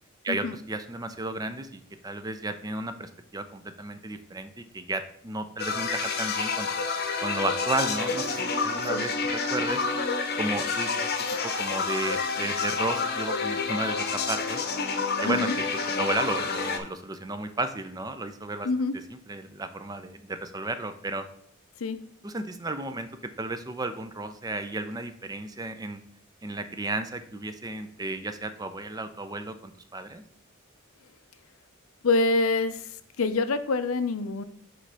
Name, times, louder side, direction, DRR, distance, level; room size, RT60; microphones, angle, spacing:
voice 1, 0.2-6.7 7.2-9.8 10.4-11.1 11.4-14.6 15.2-15.5 16.0-18.7 19.1-21.3 22.2-26.0 26.4-30.2, right 2 dB, 20° right, 10 dB, 0.5 m, -33 dB
sound 1, 5.6-16.8, left 4 dB, 50° left, 0.8 m, -29 dB
voice 2, 15.2-15.5 18.6-19.0 21.8-22.0 32.0-32.8 33.2-34.4, left 3 dB, 80° left, 11 dB, 0.6 m, -25 dB
7.6 x 3.3 x 5.5 m, 0.65 s
head